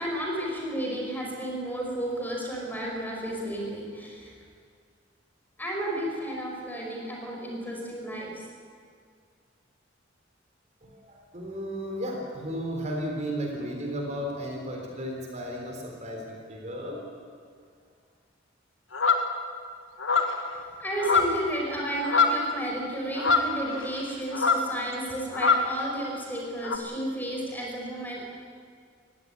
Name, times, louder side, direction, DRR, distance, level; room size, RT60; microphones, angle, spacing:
voice 1, 0.0-4.3 5.6-8.3 20.5-28.2, right 1 dB, 10° left, -1 dB, 5.1 m, -32 dB
voice 2, 10.8-17.0, equal, 40° right, 0 dB, 3.8 m, -34 dB
sound 1, 18.9-19.3 20.0-20.5 21.0-21.5 21.8-22.5 23.2-24.0 24.3-24.7 25.3-25.7 26.6-26.8, left 4 dB, 90° left, 1.8 m, -24 dB
19.5 x 16.5 x 9.9 m, 2.1 s
head